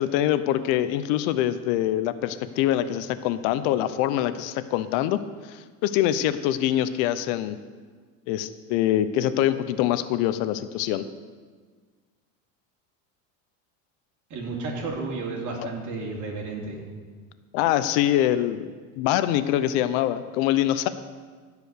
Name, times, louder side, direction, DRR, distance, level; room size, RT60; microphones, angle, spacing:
voice 1, 0.0-5.2 5.5-7.6 8.3-11.0 17.5-18.7 19.0-20.9, left 12 dB, 75° left, 13 dB, 0.7 m, -24 dB
voice 2, 14.3-16.8, right 3 dB, 50° right, -1 dB, 3.1 m, -32 dB
15.0 x 5.1 x 6.6 m, 1.5 s
supercardioid pair, 115°, 38 cm